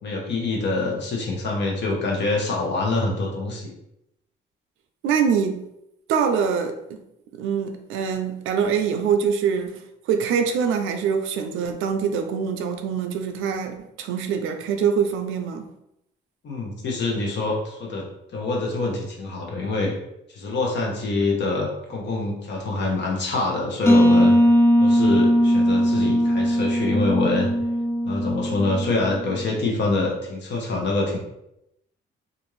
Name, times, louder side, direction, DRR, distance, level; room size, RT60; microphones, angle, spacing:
voice 1, 0.0-3.7 16.4-19.9 20.3-24.3 24.8-27.5 28.0-31.2, left 3 dB, 60° left, 0.9 m, -25 dB
voice 2, 5.0-5.6 6.1-7.0 7.4-15.7, right 6 dB, 90° right, 0.4 m, -24 dB
sound 1, 23.9-29.4, equal, 15° left, 0.4 m, -19 dB
2.5 x 2.5 x 3.1 m
cardioid pair, 90°, 20 cm